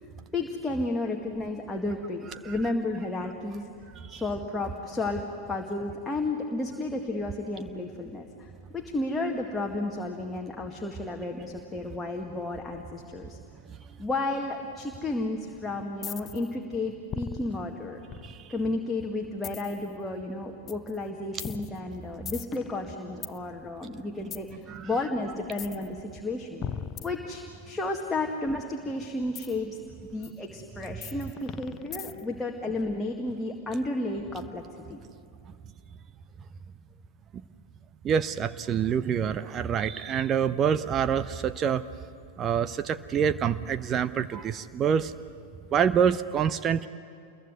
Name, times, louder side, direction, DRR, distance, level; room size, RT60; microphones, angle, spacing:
voice 1, 0.3-3.7 4.1-13.4 14.0-18.0 18.5-26.6 27.0-29.8 30.1-35.0, left 2 dB, 10° left, 0 dB, 2.0 m, -32 dB
sound 1, 16.0-16.5 17.1-18.7 19.4-19.9 20.7-20.9 21.4-23.4 24.3-24.5 25.5-25.9 26.6-27.8 29.4-29.6 30.2-30.3 31.0-32.4, left 8 dB, 25° left, 0.8 m, -39 dB
voice 2, 38.0-41.8 42.4-45.1 45.7-46.9, right 8 dB, 30° right, 12 dB, 0.7 m, -26 dB
28.0 x 22.0 x 9.5 m, 2.5 s
figure-of-eight pair, 90°, 0 cm